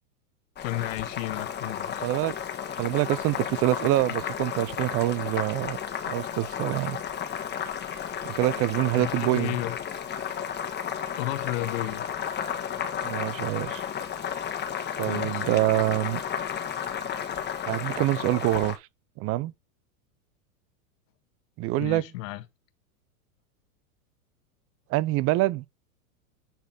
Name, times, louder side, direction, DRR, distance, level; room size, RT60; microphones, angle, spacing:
voice 1, 0.6-2.1 9.0-9.8 11.2-12.1 15.1-15.6 21.8-22.4, left 16 dB, 60° left, 1.7 m, -33 dB
Boiling, 0.6-18.8, left 8 dB, 25° left, 1.6 m, -33 dB
voice 2, 2.0-2.4 2.8-5.8 6.1-7.0 8.2-9.5 13.0-13.8 15.0-16.2 17.7-18.8 19.2-19.5 21.6-22.0 24.9-25.6, right 17 dB, 30° right, 0.6 m, -25 dB
10.0 x 4.1 x 5.4 m
hypercardioid pair, 120°, 43 cm